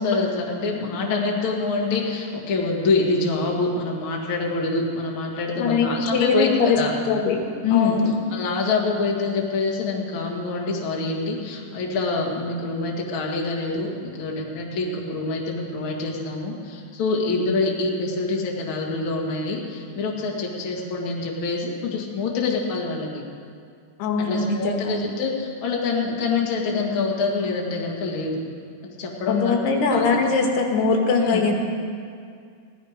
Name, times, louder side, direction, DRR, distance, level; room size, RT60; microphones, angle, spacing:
voice 1, 0.0-6.5 6.8-6.9 7.6-8.0 8.3-23.2 24.2-28.4 28.8-29.6 29.9-30.1 31.2-31.4, left 3 dB, 45° left, -1 dB, 1.8 m, -25 dB
voice 2, 5.6-6.8 7.1-7.4 7.7-8.2 24.0-25.0 29.3-31.5, left 4 dB, 85° left, 2 dB, 3.4 m, -21 dB
17.5 x 12.0 x 5.1 m, 2.3 s
omnidirectional pair, 4.6 m